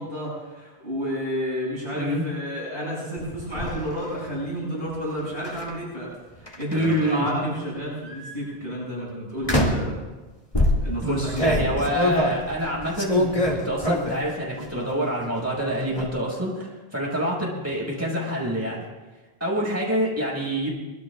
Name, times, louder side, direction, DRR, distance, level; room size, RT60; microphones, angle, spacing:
voice 1, 0.0-6.1 6.4-10.1 10.8-11.6, equal, 70° right, -7 dB, 7.8 m, -30 dB
voice 2, 1.9-2.2 6.7-7.3 11.0-18.9 19.4-20.7, equal, 15° right, -5 dB, 6.0 m, -26 dB
sound 1, 3.2-3.7 5.4-5.7 6.5-7.3 8.0-8.3 9.4-9.9 10.5-14.3 14.7-15.2 15.5-16.1, left 1 dB, 30° left, 2.4 m, -25 dB
24.0 x 21.5 x 2.5 m, 1.2 s
omnidirectional pair, 1.1 m